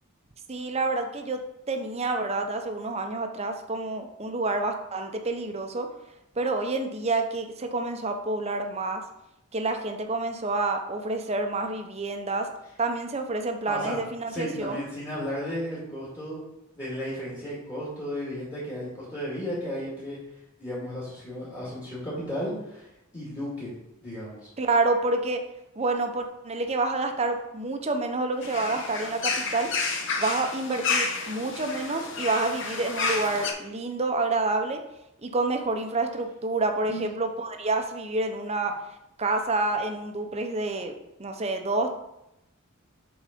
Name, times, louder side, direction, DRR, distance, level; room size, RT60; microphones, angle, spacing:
voice 1, 0.5-1.4 1.7-5.9 6.4-9.0 9.5-12.5 12.8-14.8 24.6-25.4 25.8-29.7 30.2-34.8 35.2-38.7 39.2-41.9, right 3 dB, 30° right, 5 dB, 0.7 m, -28 dB
voice 2, 13.7-14.0 14.3-16.4 16.8-20.2 20.6-23.7 24.0-24.4 36.9-37.0, equal, 20° left, -8 dB, 2.1 m, -34 dB
sound 1, 28.4-33.5, left 4 dB, 60° left, 1.0 m, -30 dB
7.4 x 4.0 x 5.1 m, 0.87 s
head